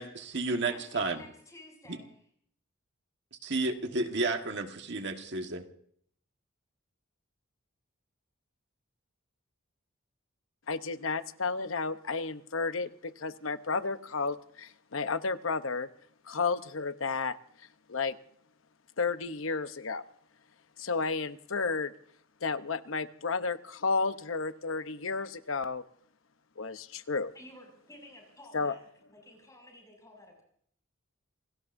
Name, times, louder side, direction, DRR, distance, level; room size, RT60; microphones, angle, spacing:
voice 1, 0.0-1.2 1.9-2.0 3.4-5.6, right 3 dB, 55° right, 1.6 m, -32 dB
voice 2, 0.6-2.1 27.3-28.8 29.1-30.4, left 1 dB, 15° left, 6.8 m, -52 dB
voice 3, 10.7-15.9 16.3-17.4 17.9-18.1 19.0-20.0 20.8-21.9 22.4-25.8 26.6-27.3 28.5-28.7, left 4 dB, 70° left, 0.9 m, -32 dB
28.0 x 18.5 x 2.7 m
head